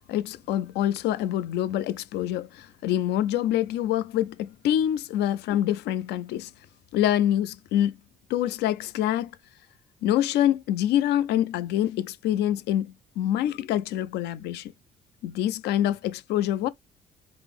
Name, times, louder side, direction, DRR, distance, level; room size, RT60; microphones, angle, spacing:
voice 1, 0.1-6.5 6.9-7.9 8.3-9.3 10.0-14.7 15.2-16.7, left 12 dB, 80° left, 0.5 m, -26 dB
4.9 x 2.0 x 3.4 m
cardioid pair, 110°, 17 cm